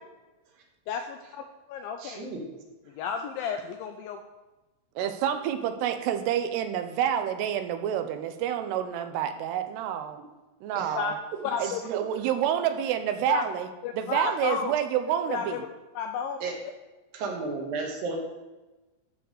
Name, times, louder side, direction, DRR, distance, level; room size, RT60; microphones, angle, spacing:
voice 1, 0.9-2.3 3.0-4.2 10.9-11.1 11.4-11.8 13.3-13.4 13.8-14.7 15.3-15.6 16.0-16.4, left 7 dB, 85° left, 5 dB, 2.1 m, -32 dB
voice 2, 2.0-2.4 10.8-10.9 11.6-12.0 16.4-16.5 17.1-18.2, right 4 dB, 65° right, 1 dB, 3.0 m, -33 dB
voice 3, 5.0-10.2 10.6-11.2 11.6-15.6, right 9 dB, 85° right, 8 dB, 2.8 m, -28 dB
12.5 x 4.7 x 6.5 m, 1.1 s
omnidirectional pair, 4.7 m